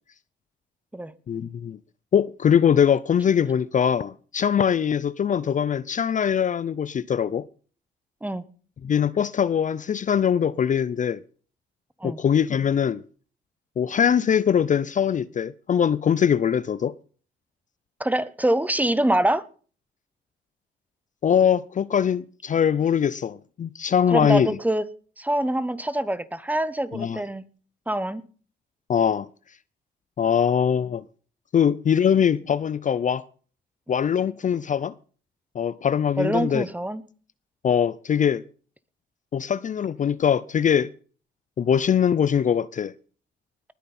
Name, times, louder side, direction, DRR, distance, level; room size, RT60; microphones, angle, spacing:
voice 1, 1.3-1.8 2.1-7.5 8.8-11.2 12.0-13.0 13.8-16.9 21.2-24.6 26.9-27.2 28.9-29.3 30.2-31.0 31.5-33.2 33.9-34.9 35.5-36.6 37.6-38.4 39.3-40.9 41.6-42.9, left 8 dB, 40° left, 0.5 m, -22 dB
voice 2, 18.0-19.4 24.1-24.9 25.2-27.4 27.9-28.2 36.2-37.0, right 1 dB, 10° right, 0.9 m, -25 dB
19.5 x 9.3 x 4.3 m
cardioid pair, 90°, 20 cm